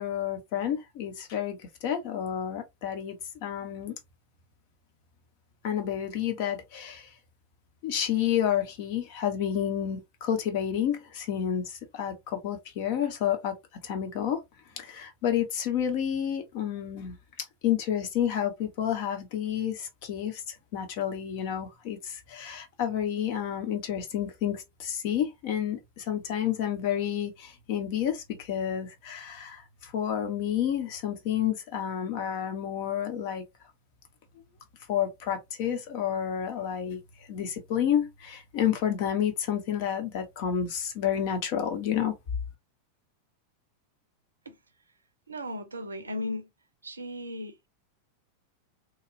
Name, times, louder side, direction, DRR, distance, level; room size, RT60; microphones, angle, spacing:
voice 1, 0.0-4.0 5.6-7.1 7.8-13.5 13.8-14.4 14.8-33.4 34.9-37.0 37.3-42.1, left 9 dB, 45° left, 0.9 m, -30 dB
voice 2, 45.3-46.5 46.8-47.7, left 1 dB, 75° right, 0.5 m, -36 dB
3.0 x 2.3 x 2.5 m
figure-of-eight pair, 90°, 0 cm